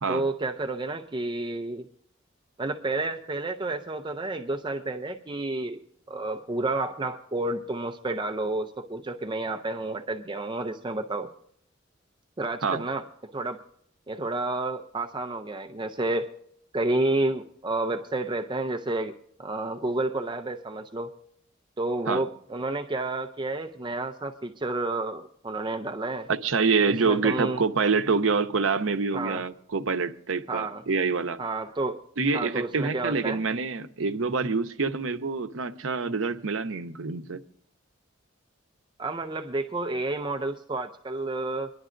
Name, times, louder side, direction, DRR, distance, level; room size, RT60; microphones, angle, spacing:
voice 1, 0.1-1.9 2.6-5.8 6.1-11.3 12.4-13.0 13.3-13.6 14.1-16.3 16.7-21.1 21.8-26.3 26.9-27.6 29.1-29.4 30.5-30.8 31.4-32.0 32.3-33.4 39.0-41.7, right 2 dB, 25° right, 0.5 m, -30 dB
voice 2, 26.3-31.4 32.2-37.4, right 4 dB, 80° right, 0.7 m, -26 dB
24.5 x 11.0 x 2.5 m
head